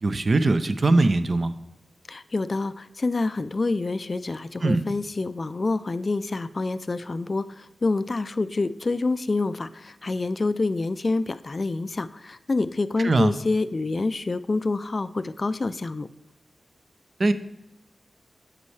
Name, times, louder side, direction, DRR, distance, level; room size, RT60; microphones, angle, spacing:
voice 1, 0.0-1.5 4.6-4.8 13.0-13.3 17.2-17.3, right 2 dB, 50° right, 11 dB, 0.5 m, -21 dB
voice 2, 2.1-16.1, left 3 dB, 40° left, 13 dB, 0.3 m, -27 dB
8.1 x 5.3 x 3.2 m, 0.90 s
cardioid pair, 60°, 0 cm